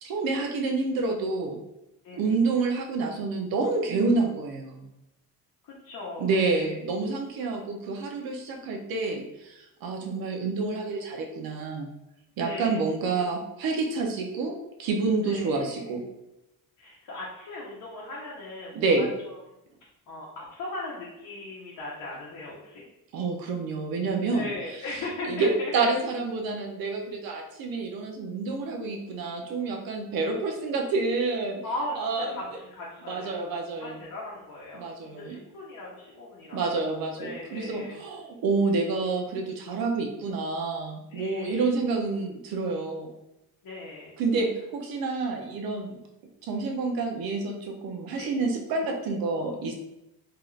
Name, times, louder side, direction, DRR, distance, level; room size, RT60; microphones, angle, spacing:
voice 1, 0.0-1.6 2.2-4.9 6.2-11.9 12.4-16.0 18.7-19.1 23.1-24.5 25.3-31.6 32.0-32.3 33.1-34.0 34.7-35.4 36.5-43.1 44.2-46.0 46.5-49.7, right 3 dB, 75° right, 2 dB, 0.6 m, -28 dB
voice 2, 2.0-2.3 5.6-6.8 12.4-12.8 15.2-15.9 16.8-19.4 20.1-22.8 24.3-25.7 31.6-31.9 32.3-34.8 35.1-36.6 37.2-38.0 41.1-41.7 43.6-44.2 48.2-48.3, left 2 dB, 60° left, -5 dB, 0.8 m, -38 dB
2.8 x 2.3 x 3.1 m, 0.89 s
cardioid pair, 120°, 36 cm